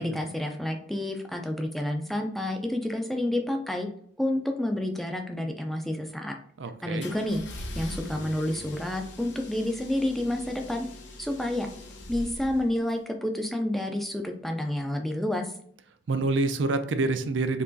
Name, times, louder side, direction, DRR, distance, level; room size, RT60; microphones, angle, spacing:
voice 1, 0.0-3.9 4.2-6.3 6.8-10.9 11.2-11.7 12.1-15.5, left 1 dB, ahead, 3 dB, 0.3 m, -29 dB
voice 2, 6.6-7.1 16.1-17.6, right 3 dB, 75° right, 8 dB, 0.5 m, -27 dB
sound 1, 7.0-13.0, left 1 dB, 65° left, 0.7 m, -42 dB
4.5 x 2.9 x 2.6 m, 0.63 s
head